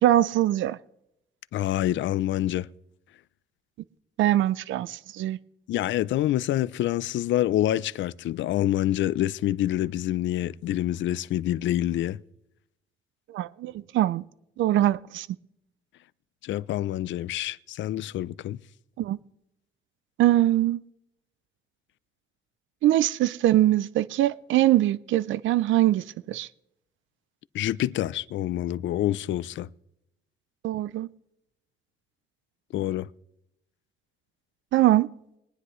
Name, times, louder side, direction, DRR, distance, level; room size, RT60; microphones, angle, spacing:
voice 1, 0.0-0.8 4.2-5.4 13.3-14.2 14.6-15.3 19.0-19.2 20.2-20.8 22.8-26.5 30.6-31.1 34.7-35.1, right 14 dB, 75° right, 0.5 m, -22 dB
voice 2, 1.5-2.7 5.7-12.2 16.4-18.6 27.5-29.7 32.7-33.1, left 13 dB, 70° left, 0.5 m, -27 dB
22.0 x 9.9 x 3.1 m
cardioid pair, 90°, 20 cm